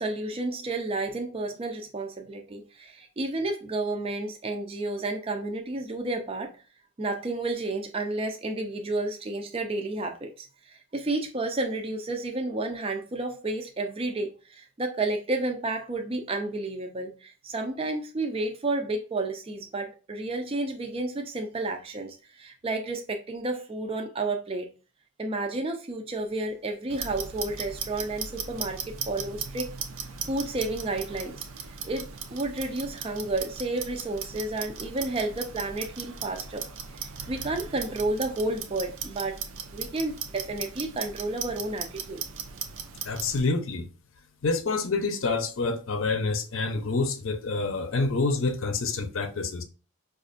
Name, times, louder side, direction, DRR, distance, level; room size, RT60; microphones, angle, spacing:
voice 1, 0.0-6.5 7.0-24.7 25.2-29.8 30.3-31.5 31.8-36.7 36.9-39.4 39.7-42.2, right 2 dB, 25° right, 0.4 m, -31 dB
Clock, 26.9-43.4, right 6 dB, 75° right, 0.5 m, -38 dB
voice 2, 43.0-43.9 44.4-49.6, left 3 dB, 65° left, 0.6 m, -27 dB
5.1 x 2.4 x 2.4 m
head